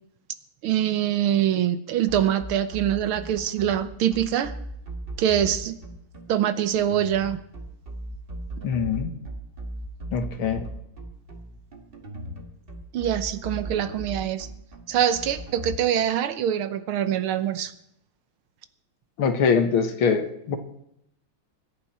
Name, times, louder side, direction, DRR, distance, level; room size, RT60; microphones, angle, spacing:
voice 1, 0.6-4.5 5.2-5.8 6.3-7.4 12.9-14.5 14.9-17.7, right 10 dB, 85° right, 12 dB, 1.8 m, -24 dB
sound 1, 2.1-15.8, right 1 dB, 30° right, 1.7 m, -37 dB
voice 2, 8.6-9.1 10.1-10.6 19.2-20.6, left 6 dB, 80° left, 7 dB, 2.2 m, -23 dB
25.5 x 10.5 x 4.3 m, 0.77 s
omnidirectional pair, 2.3 m